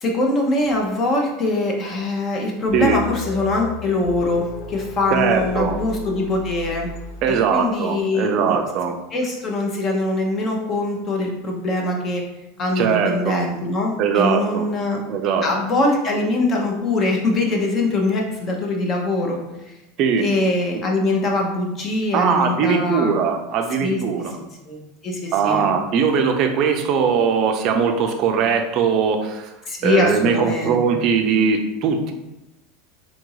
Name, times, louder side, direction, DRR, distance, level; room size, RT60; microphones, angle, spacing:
voice 1, 0.0-6.9 7.3-8.6 9.1-12.2 12.6-15.0 15.4-19.4 20.2-23.2 23.8-24.2 24.7-25.7 29.7-31.0, left 2 dB, 25° left, 0 dB, 0.7 m, -23 dB
sound 1, 2.7-7.7, left 2 dB, 70° left, 0.8 m, -34 dB
voice 2, 5.1-5.8 7.2-9.0 12.8-13.4 14.0-14.6 15.1-15.5 20.0-20.2 20.7-20.8 22.1-24.4 25.3-29.5 29.8-32.1, right 6 dB, 40° right, 5 dB, 0.5 m, -20 dB
3.8 x 2.5 x 4.7 m, 0.96 s
supercardioid pair, 165°, 0 cm